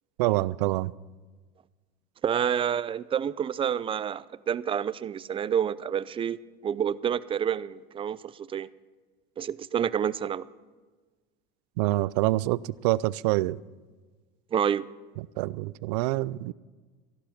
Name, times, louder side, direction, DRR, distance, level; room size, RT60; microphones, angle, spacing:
voice 1, 0.2-0.9 11.8-13.6 15.2-16.5, right 18 dB, 80° right, 0.4 m, -26 dB
voice 2, 2.2-8.7 9.4-10.5 14.5-14.9, right 8 dB, 25° right, 0.4 m, -28 dB
14.5 x 11.5 x 5.8 m
supercardioid pair, 110°, 20 cm